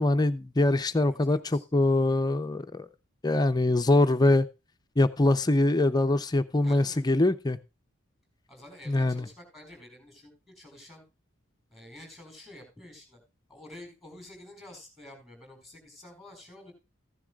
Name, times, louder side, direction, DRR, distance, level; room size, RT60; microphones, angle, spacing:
voice 1, 0.0-2.9 3.2-4.5 5.0-7.6 8.9-9.2, left 2 dB, 20° left, 10 dB, 0.5 m, -23 dB
voice 2, 1.0-1.6 6.6-7.0 8.5-11.0 11.7-13.2 13.5-16.7, left 1 dB, ahead, 5 dB, 4.6 m, -49 dB
15.0 x 10.5 x 2.4 m, 0.28 s
head